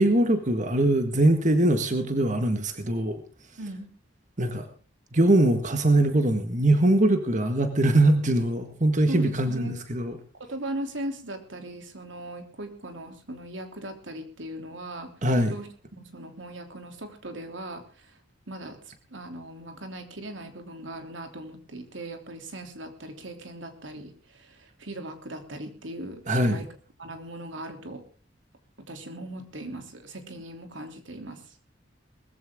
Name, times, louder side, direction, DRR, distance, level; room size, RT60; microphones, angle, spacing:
voice 1, 0.0-3.2 4.4-4.7 5.1-10.1 15.2-15.5 26.3-26.6, right 1 dB, 40° right, 7 dB, 1.7 m, -22 dB
voice 2, 3.6-3.9 9.1-9.8 10.4-15.1 15.5-18.2 18.5-26.7 27.0-28.0 28.8-31.6, right 1 dB, 85° right, 6 dB, 3.1 m, -39 dB
20.0 x 15.0 x 3.7 m, 0.35 s
head